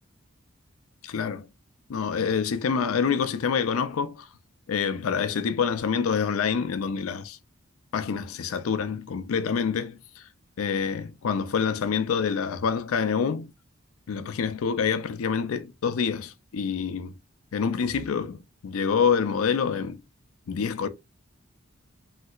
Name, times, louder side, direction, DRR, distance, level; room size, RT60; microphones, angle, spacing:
voice 1, 1.0-1.5 1.9-4.3 4.7-7.4 7.9-10.3 10.6-13.5 14.1-17.1 17.5-20.0 20.5-20.9, left 6 dB, 85° left, 0.4 m, -27 dB
3.2 x 2.8 x 2.3 m
head